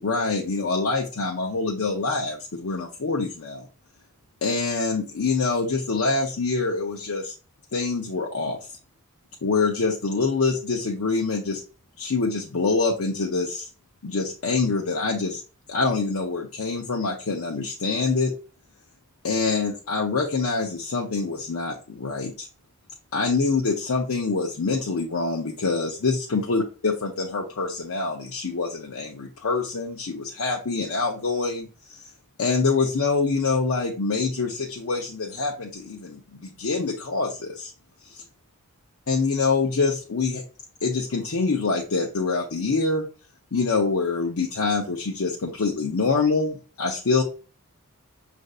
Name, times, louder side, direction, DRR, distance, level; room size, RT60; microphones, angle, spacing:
voice 1, 0.0-3.7 4.4-7.3 7.7-8.6 9.4-11.6 12.0-13.7 14.0-15.4 15.7-18.3 19.2-22.5 23.1-32.1 32.4-37.7 38.1-38.2 39.1-40.4 40.8-43.0 43.5-47.2, left 4 dB, 80° left, -1 dB, 0.7 m, -25 dB
6.4 x 2.6 x 2.4 m, 0.35 s
head